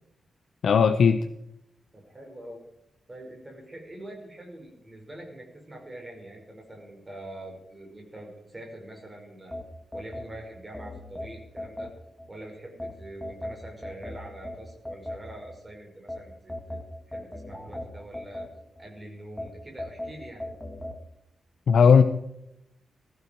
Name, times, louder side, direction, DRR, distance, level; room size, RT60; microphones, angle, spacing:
voice 1, 0.6-1.2 21.7-22.0, left 6 dB, 60° left, 9 dB, 0.8 m, -17 dB
voice 2, 1.9-2.6 3.1-9.6 9.9-11.9 12.3-16.8 17.1-18.5 18.8-20.5, right 1 dB, 15° right, 0 dB, 5.4 m, -44 dB
sound 1, 9.5-12.3 12.8-15.6 16.1-18.9 19.4-21.0, left 1 dB, 5° left, 1.6 m, -38 dB
20.5 x 14.5 x 4.6 m, 0.83 s
wide cardioid pair, 165°, 0 cm